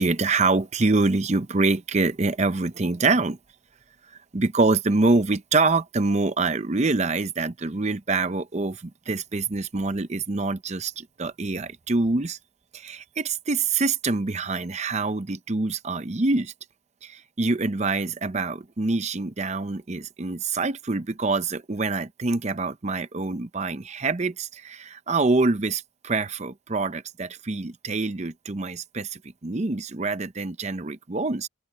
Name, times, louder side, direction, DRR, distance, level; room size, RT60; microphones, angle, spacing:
voice 1, 0.0-3.4 4.3-12.4 12.7-16.5 17.0-31.5, right 3 dB, 35° right, 0.6 m, -25 dB
open air
head